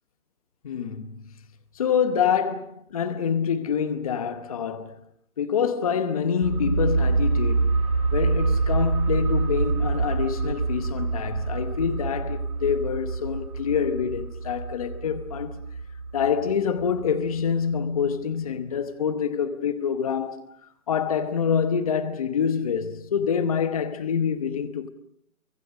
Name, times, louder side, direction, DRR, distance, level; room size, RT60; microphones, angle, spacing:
voice 1, 0.6-1.3 1.8-5.0 5.4-7.8 8.1-15.6 16.1-20.5 20.9-24.9, left 7 dB, 25° left, 1.0 m, -26 dB
sound 1, 6.4-17.8 18.1-18.2, right 3 dB, 80° right, 5.0 m, -26 dB
24.5 x 24.0 x 6.6 m
hypercardioid pair, 160°, 44 cm